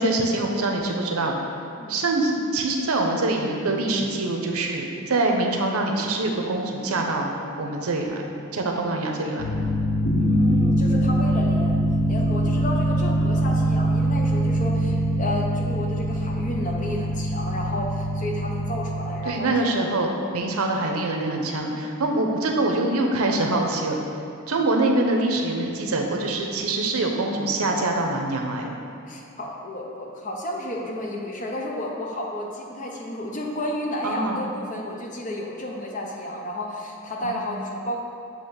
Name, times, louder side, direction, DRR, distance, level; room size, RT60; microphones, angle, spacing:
voice 1, 0.0-1.4 1.9-9.5 19.2-24.0 24.5-28.8 34.0-34.4 37.2-37.6, right 2 dB, 85° right, 2 dB, 0.7 m, -24 dB
sound 1, 9.4-19.3, right 1 dB, 80° left, 0.7 m, -23 dB
voice 2, 10.1-11.8 12.1-19.7 29.1-38.0, left 1 dB, 35° left, -1 dB, 0.7 m, -32 dB
7.6 x 2.9 x 5.6 m, 2.5 s
head